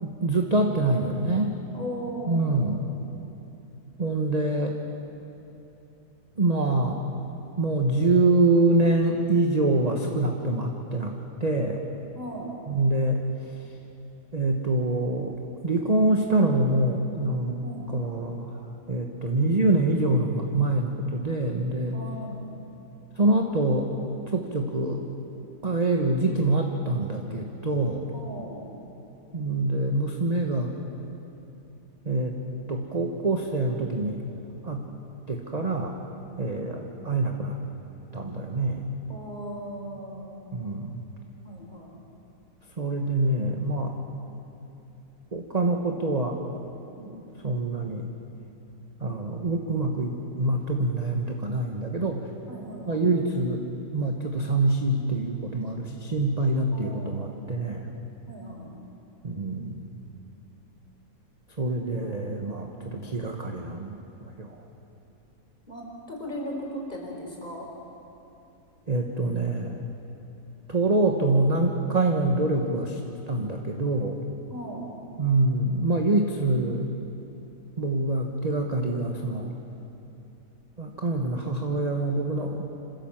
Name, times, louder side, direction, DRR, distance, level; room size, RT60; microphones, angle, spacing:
voice 1, 0.0-1.6 2.3-2.8 4.0-4.8 6.4-7.0 7.5-11.8 12.7-13.2 14.3-15.4 15.6-17.6 17.9-18.6 18.9-22.0 23.2-23.9 24.3-25.0 25.6-28.1 29.3-30.7 32.0-32.3 32.7-34.2 34.6-34.9 35.3-36.0 36.4-37.6 38.1-38.9 40.5-41.0 42.8-43.9 45.3-46.4 47.4-48.1 49.0-52.2 52.9-53.6 53.9-58.0 59.2-60.0 61.6-64.6 68.9-69.9 70.7-73.0 73.3-74.2 75.2-76.9 77.8-79.6 80.8-82.6, right 2 dB, 25° right, 2 dB, 1.1 m, -25 dB
voice 2, 1.7-3.0 12.1-12.5 17.6-17.9 21.9-22.6 28.1-28.6 36.4-36.7 39.1-40.6 41.4-41.9 47.0-47.2 52.4-53.1 56.7-57.2 58.3-58.7 61.9-62.2 62.7-63.0 65.7-67.7 74.5-74.9, equal, 25° left, -2 dB, 4.2 m, -38 dB
26.5 x 15.5 x 7.4 m, 2.9 s
omnidirectional pair, 1.8 m